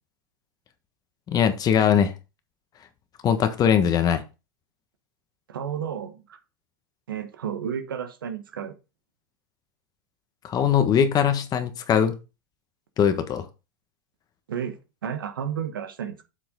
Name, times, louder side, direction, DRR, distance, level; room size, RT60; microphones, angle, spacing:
voice 1, 1.3-2.1 3.2-4.2 10.4-12.1 13.0-13.4, left 8 dB, 35° left, 1.4 m, -21 dB
voice 2, 5.5-6.4 7.1-8.7 14.5-16.2, right 8 dB, 80° right, 1.3 m, -32 dB
7.7 x 6.2 x 3.9 m
hypercardioid pair, 95°, 11 cm